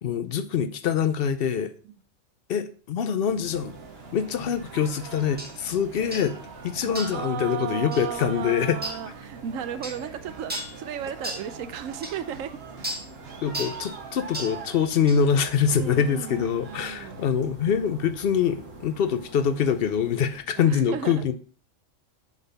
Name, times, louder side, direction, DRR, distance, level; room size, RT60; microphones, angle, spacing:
voice 1, 0.0-1.7 2.5-3.7 4.1-6.4 6.6-8.8 13.4-21.3, left 7 dB, 60° left, 10 dB, 0.7 m, -24 dB
sound 1, 3.2-20.4, right 2 dB, 70° right, 1.6 m, -47 dB
sound 2, 3.5-17.3, right 4 dB, 55° right, 1.0 m, -44 dB
sound 3, 5.4-5.5 6.1-6.3 7.0-7.2 7.9-8.1 8.8-9.0 9.8-10.0 10.5-10.8 11.2-11.5 12.0-12.1 12.8-13.1 13.5-13.8 14.3-14.6 15.1-15.2, right 1 dB, 10° right, 1.3 m, -34 dB
voice 2, 6.8-12.6 15.7-17.2 20.4-21.3, right 9 dB, 90° right, 12 dB, 1.0 m, -35 dB
7.2 x 4.0 x 4.0 m, 0.39 s
omnidirectional pair, 1.3 m